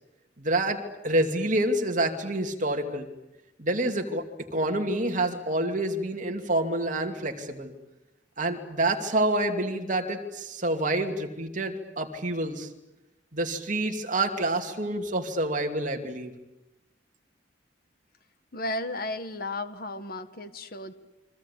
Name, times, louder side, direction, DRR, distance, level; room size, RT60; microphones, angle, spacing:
voice 1, 0.4-3.1 3.6-4.2 4.5-7.7 8.4-12.7 13.3-16.3, right 1 dB, 45° right, 4 dB, 2.7 m, -27 dB
voice 2, 18.5-20.9, left 2 dB, 55° left, 10 dB, 1.7 m, -34 dB
30.0 x 23.5 x 8.5 m, 0.94 s
head